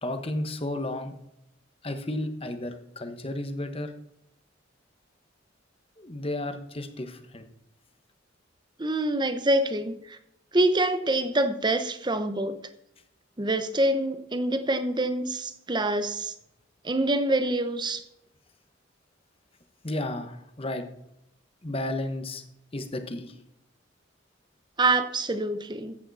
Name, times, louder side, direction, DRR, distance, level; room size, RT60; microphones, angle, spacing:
voice 1, 0.0-1.2 1.8-3.9 6.0-7.4 19.8-20.8 21.6-22.4 22.7-23.4, left 1 dB, 30° left, 7 dB, 1.2 m, -33 dB
voice 2, 8.8-10.2 10.5-12.6 13.4-16.3 16.8-18.0 24.8-26.0, right 2 dB, 25° right, 10 dB, 0.9 m, -26 dB
14.5 x 8.9 x 4.2 m, 0.80 s
head